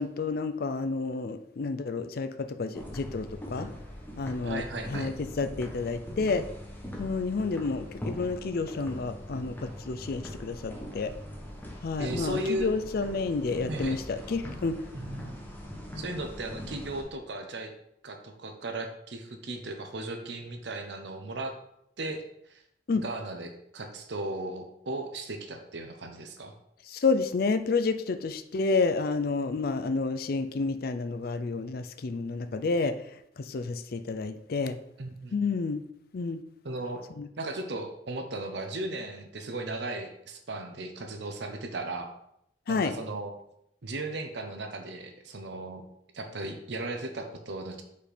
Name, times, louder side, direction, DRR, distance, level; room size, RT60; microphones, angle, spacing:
voice 1, 0.0-3.7 4.2-4.6 4.9-6.5 7.0-11.1 11.8-14.8 22.9-23.0 26.9-32.9 33.4-34.8 35.3-35.8 36.1-36.4 37.2-37.3 42.7-42.9, left 4 dB, 55° left, 10 dB, 0.4 m, -30 dB
sound 1, 2.7-17.0, equal, 10° left, 1.1 m, -41 dB
voice 2, 4.4-5.1 12.0-12.7 13.7-14.0 14.9-15.4 16.0-17.7 18.0-21.5 22.0-22.6 22.9-26.5 35.0-35.4 36.6-37.0 37.4-42.1 42.7-43.4 43.8-45.8 46.1-47.8, right 2 dB, 70° right, 5 dB, 0.8 m, -36 dB
5.2 x 4.3 x 4.9 m, 0.76 s
head